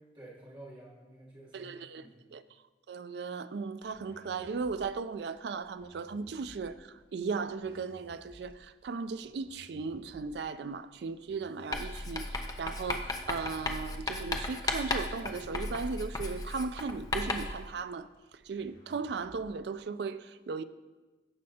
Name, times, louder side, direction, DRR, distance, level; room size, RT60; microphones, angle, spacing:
voice 1, 0.1-2.2, right 1 dB, 25° right, 2.6 m, -51 dB
voice 2, 1.5-2.0 2.3-2.4 2.9-6.8 7.1-18.1 18.5-20.6, right 4 dB, 70° right, 0.4 m, -37 dB
sound 1, 3.8-19.8, equal, 60° left, 1.9 m, -57 dB
Writing, 11.7-17.6, left 2 dB, 20° left, 0.5 m, -35 dB
16.0 x 5.4 x 2.8 m
head